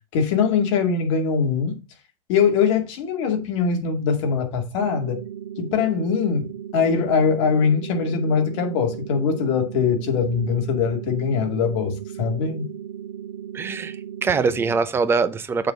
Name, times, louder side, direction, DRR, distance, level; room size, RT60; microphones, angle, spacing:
voice 1, 0.1-1.7 2.3-5.2 5.6-12.7, left 6 dB, 55° left, 2.2 m, -22 dB
sound 1, 4.8-14.8, right 10 dB, 85° right, 0.9 m, -36 dB
voice 2, 13.5-15.7, right 4 dB, 15° right, 0.6 m, -23 dB
7.0 x 4.0 x 6.4 m
supercardioid pair, 140°, 17 cm